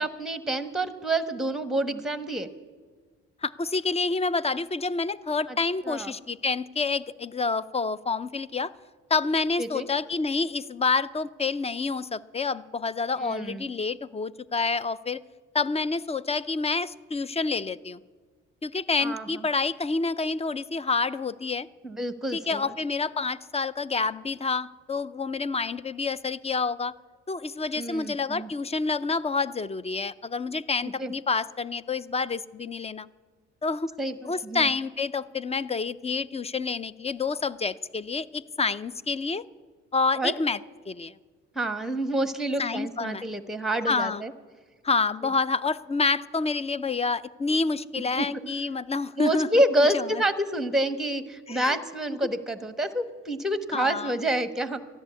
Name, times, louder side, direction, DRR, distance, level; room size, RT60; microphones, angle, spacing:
voice 1, 0.0-2.5 5.5-5.6 5.8-6.1 9.6-9.9 13.2-13.7 19.0-19.4 21.8-22.8 27.8-28.5 30.8-31.1 34.0-34.7 40.1-40.3 41.5-44.3 45.2-45.3 47.9-48.4 49.2-54.8, right 1 dB, ahead, 10 dB, 1.1 m, -28 dB
voice 2, 3.4-8.7 9.1-15.2 15.5-18.0 18.6-21.7 22.3-26.9 27.3-33.1 33.6-33.9 34.2-39.4 39.9-40.6 40.9-41.1 42.6-43.3 43.9-44.2 44.8-49.5 49.9-50.2 51.5-51.8 53.7-54.1, left 4 dB, 20° left, 17 dB, 0.4 m, -28 dB
13.5 x 11.0 x 8.2 m, 1.5 s
cardioid pair, 90°, 30 cm